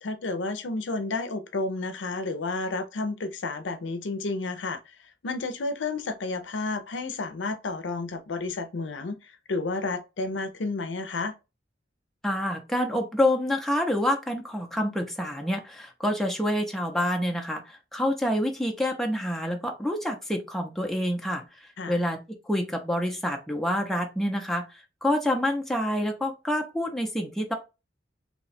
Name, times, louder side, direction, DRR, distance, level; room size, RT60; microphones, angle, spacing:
voice 1, 0.0-11.3 21.8-22.0, left 3 dB, 80° left, 0.6 m, -31 dB
voice 2, 12.2-21.4 21.9-27.5, left 1 dB, ahead, 0.6 m, -27 dB
2.9 x 2.3 x 4.1 m
head